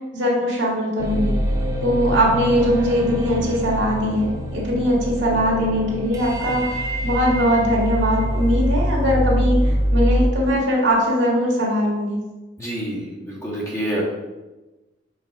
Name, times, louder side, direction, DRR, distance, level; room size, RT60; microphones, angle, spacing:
voice 1, 0.1-1.4 1.8-12.2, equal, 85° right, -3 dB, 1.9 m, -21 dB
sound 1, 1.0-10.2, equal, 20° right, 0.9 m, -24 dB
voice 2, 12.6-14.0, right 1 dB, 15° left, -6 dB, 1.8 m, -27 dB
5.7 x 4.1 x 4.7 m, 1.1 s
head